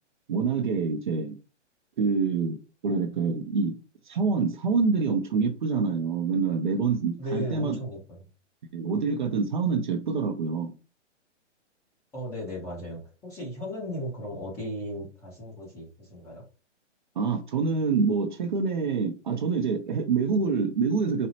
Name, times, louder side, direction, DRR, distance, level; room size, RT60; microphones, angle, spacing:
voice 1, 0.3-1.4 2.0-3.7 4.1-7.8 8.7-10.7 17.2-21.3, right 5 dB, 40° right, 0.5 m, -26 dB
voice 2, 7.2-8.2 12.1-16.4, equal, 10° left, 0.6 m, -36 dB
4.1 x 2.0 x 2.7 m
hypercardioid pair, 150°, 36 cm